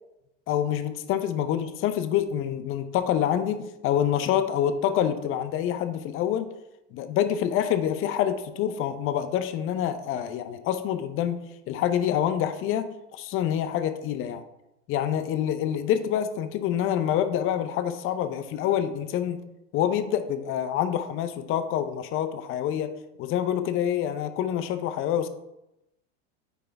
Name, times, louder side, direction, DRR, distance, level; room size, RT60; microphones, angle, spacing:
voice 1, 0.5-6.5 6.9-14.4 14.9-19.4 19.7-22.9 23.2-25.3, left 10 dB, 40° left, 11 dB, 0.6 m, -26 dB
9.3 x 3.4 x 3.3 m, 0.89 s
supercardioid pair, 115°, 33 cm